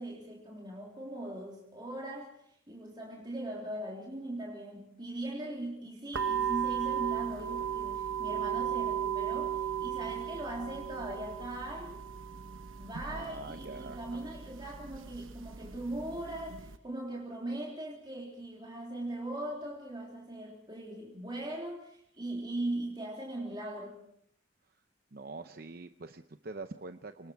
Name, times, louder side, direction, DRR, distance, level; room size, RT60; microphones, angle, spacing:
voice 1, 0.0-12.0 12.8-24.0, right 1 dB, 25° right, -2 dB, 3.4 m, -40 dB
sound 1, 6.1-16.8, right 9 dB, 85° right, 1.1 m, -36 dB
voice 2, 13.1-14.2 25.1-27.3, right 3 dB, 50° right, 8 dB, 0.7 m, -44 dB
29.5 x 20.0 x 4.7 m, 0.69 s
head